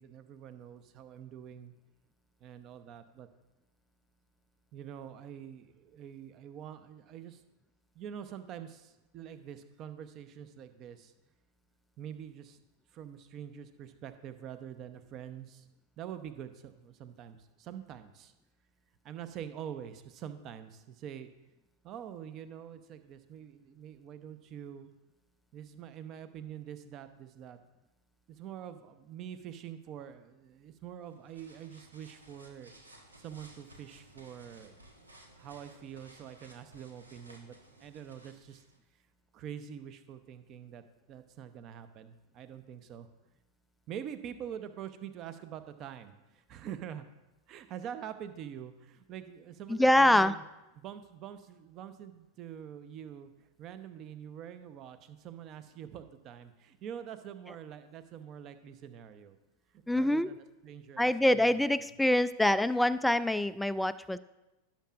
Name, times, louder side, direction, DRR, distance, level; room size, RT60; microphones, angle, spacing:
voice 1, 0.0-1.7 2.4-3.3 4.7-7.4 7.9-11.1 12.0-12.6 12.9-15.7 16.0-18.3 19.0-21.3 21.8-24.9 25.5-27.6 28.3-32.7 33.2-34.7 35.3-38.6 39.3-43.1 43.9-47.1 47.5-50.4 50.8-53.3 53.6-59.4 59.9-61.7, right 9 dB, 35° right, 11 dB, 0.8 m, -45 dB
sound 1, 31.0-38.8, right 1 dB, 80° right, 1.4 m, -57 dB
voice 2, 49.7-50.3 59.9-60.3 61.0-64.2, left 1 dB, 5° left, 13 dB, 0.3 m, -25 dB
17.0 x 7.3 x 2.5 m, 0.99 s
figure-of-eight pair, 90°, 0 cm